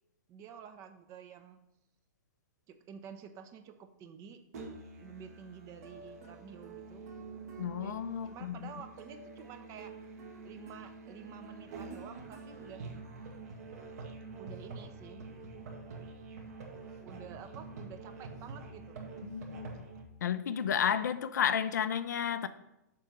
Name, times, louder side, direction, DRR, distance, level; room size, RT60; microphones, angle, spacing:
voice 1, 0.3-1.6 2.7-4.4 5.0-7.0 7.8-8.0 8.2-9.9 10.4-12.8 14.4-15.2 17.0-19.1, right 8 dB, 35° right, 8 dB, 0.8 m, -50 dB
Musical instrument, 4.5-20.0, right 3 dB, 60° right, 1.8 m, -47 dB
voice 2, 7.6-8.7 19.2-19.8 20.2-22.5, left 8 dB, 75° left, 12 dB, 0.5 m, -32 dB
6.8 x 4.6 x 5.3 m, 0.90 s
hypercardioid pair, 115°, 10 cm